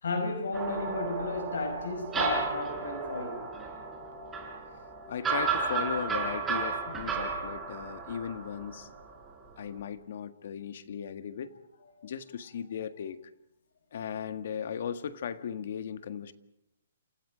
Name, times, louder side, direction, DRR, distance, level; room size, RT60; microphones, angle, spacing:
voice 1, 0.0-3.5 12.0-12.1, left 3 dB, 80° left, 5.4 m, -33 dB
sound 1, 0.5-9.3, right 5 dB, 10° right, 4.4 m, -34 dB
voice 2, 5.1-8.9 9.6-11.5 12.0-13.2 13.9-16.3, left 8 dB, 50° left, 1.7 m, -37 dB
29.0 x 28.5 x 5.1 m
hypercardioid pair, 170°, 0 cm